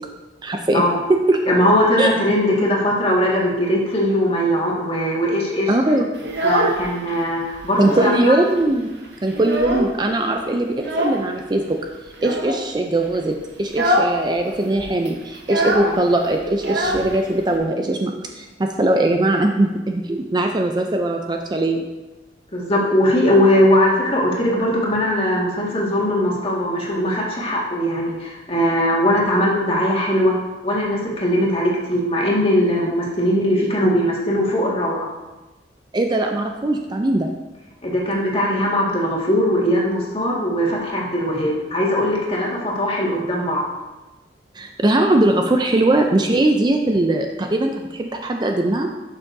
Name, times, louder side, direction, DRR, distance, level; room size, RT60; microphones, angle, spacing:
voice 1, 0.4-0.8 1.1-1.4 2.0-2.1 5.7-6.1 7.8-8.9 9.2-11.8 12.2-21.9 35.9-37.3 44.6-48.9, right 1 dB, 25° right, 3 dB, 0.4 m, -20 dB
voice 2, 1.5-5.8 6.4-8.3 15.8-16.0 22.5-30.4 30.6-35.1 37.8-43.7, equal, 35° left, -4 dB, 1.8 m, -20 dB
Child speech kid speaking, 6.1-7.2 7.5-8.3 8.6-8.7 9.0-10.1 10.8-11.3 12.1-12.6 13.1-13.3 13.6-14.2 14.4-14.5 14.8-17.6, equal, 85° right, 1.1 m, -23 dB
11.5 x 6.1 x 2.7 m, 1.1 s
head